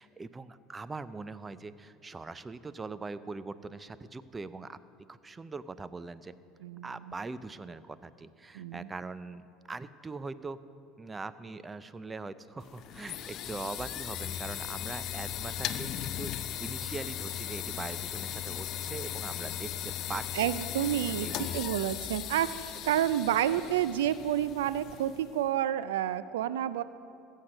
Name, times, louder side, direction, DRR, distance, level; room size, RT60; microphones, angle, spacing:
voice 1, 0.0-4.8 5.1-6.4 6.8-10.6 11.0-16.3 16.6-19.7 20.1-20.4 20.8-20.9 21.2-21.6, right 3 dB, 20° right, 15 dB, 0.5 m, -41 dB
voice 2, 6.6-6.9 8.5-8.9 20.3-21.3 21.5-26.8, right 11 dB, 80° right, 15 dB, 0.3 m, -29 dB
sound 1, 12.6-25.4, left 11 dB, 55° left, 0.5 m, -37 dB
15.0 x 6.6 x 6.4 m, 2.5 s
hypercardioid pair, 80°, 0 cm